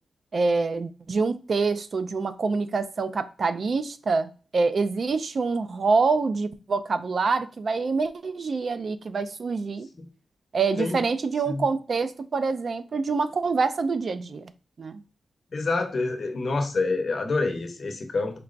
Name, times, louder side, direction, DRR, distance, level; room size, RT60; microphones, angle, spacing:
voice 1, 0.3-9.9 10.5-14.5 14.8-15.0, right 4 dB, 55° right, 0.4 m, -26 dB
voice 2, 15.5-18.4, left 3 dB, 50° left, 0.8 m, -27 dB
4.5 x 3.0 x 2.4 m
wide cardioid pair, 125°, 0 cm